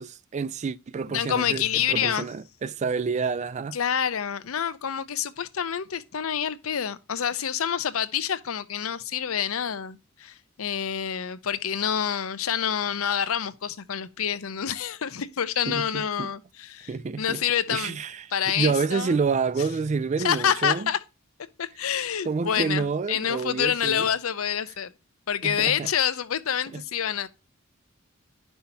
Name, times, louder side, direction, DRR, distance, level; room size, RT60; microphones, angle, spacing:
voice 1, 0.0-3.8 15.7-16.3 16.9-17.4 17.7-18.3 18.6-20.9 22.3-24.1 25.4-25.9 26.7-26.8, right 5 dB, 35° right, 0.3 m, -28 dB
voice 2, 1.1-2.3 3.7-16.9 17.2-18.0 18.3-19.2 20.2-21.0 21.6-24.9 25.3-27.3, left 8 dB, 90° left, 0.6 m, -27 dB
10.0 x 5.6 x 2.7 m
head